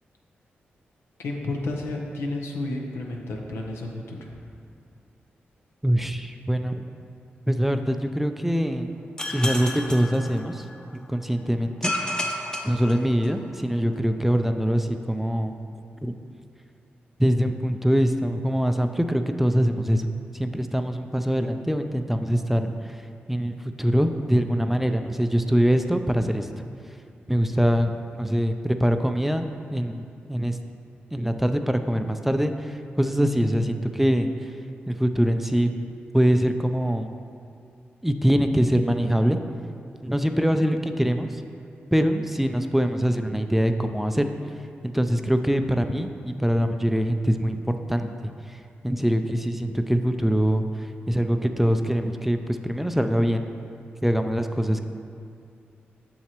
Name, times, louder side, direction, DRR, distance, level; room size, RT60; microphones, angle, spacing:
voice 1, 1.2-4.3, left 2 dB, 85° left, 0 dB, 0.8 m, -31 dB
voice 2, 5.8-6.8 7.5-8.9 9.3-10.7 11.1-11.9 12.6-15.5 16.0-16.1 17.2-20.1 20.3-23.0 23.3-26.6 27.3-27.9 28.2-30.0 30.3-30.6 31.1-34.3 34.9-35.7 36.1-37.1 38.0-39.4 40.0-41.4 41.9-44.3 44.8-48.1 48.5-53.5 54.0-54.8, equal, 5° right, 7 dB, 0.4 m, -23 dB
sound 1, 9.2-10.9 11.8-13.6, left 1 dB, 20° left, 0.8 m, -31 dB
7.1 x 6.4 x 3.0 m, 2.4 s
supercardioid pair, 50°, 4 cm